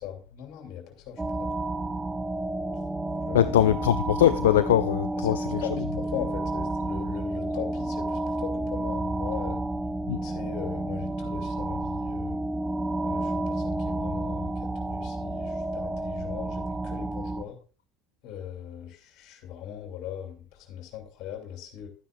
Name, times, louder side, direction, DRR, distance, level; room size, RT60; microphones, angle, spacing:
voice 1, 0.0-1.5 3.3-3.8 5.2-9.6 10.2-12.4 13.0-17.6 18.2-21.9, left 9 dB, 55° left, 2.7 m, -39 dB
sound 1, 1.2-17.4, right 2 dB, 15° right, 0.7 m, -31 dB
voice 2, 3.3-5.6 10.1-10.2, left 11 dB, 75° left, 0.3 m, -22 dB
12.0 x 9.4 x 2.5 m
hypercardioid pair, 70°, 0 cm